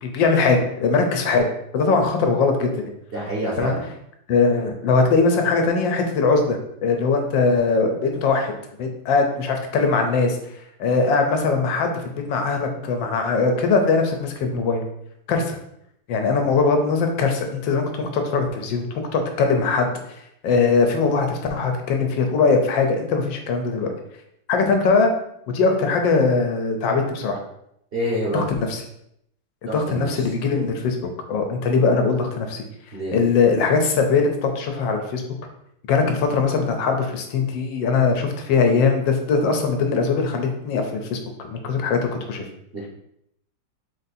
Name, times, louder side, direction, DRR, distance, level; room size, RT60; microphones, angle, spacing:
voice 1, 0.0-1.5 1.7-2.9 3.6-3.7 4.3-8.5 8.8-10.4 10.8-12.0 12.3-14.8 15.3-15.6 16.1-19.9 20.4-23.9 24.5-25.1 25.5-27.4 28.3-28.8 29.7-31.0 31.3-32.6 33.1-35.2 35.9-41.2 41.5-42.4, left 4 dB, 85° left, 4 dB, 1.4 m, -21 dB
voice 2, 3.1-3.9 27.9-28.5 29.7-30.1 32.9-33.2 42.7-42.9, equal, 50° right, -5 dB, 0.7 m, -27 dB
4.0 x 2.7 x 4.1 m, 0.76 s
omnidirectional pair, 2.0 m